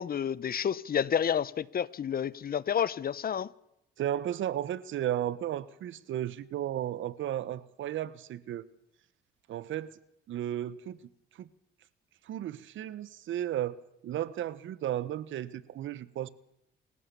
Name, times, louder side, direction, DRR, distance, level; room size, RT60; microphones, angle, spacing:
voice 1, 0.0-3.5, left 8 dB, 50° left, 1.0 m, -30 dB
voice 2, 4.0-8.7 9.5-10.0 10.3-11.0 11.4-11.5 12.3-13.8 14.0-16.3, right 11 dB, 75° right, 1.4 m, -34 dB
28.5 x 15.5 x 7.1 m
cardioid pair, 90°, 20 cm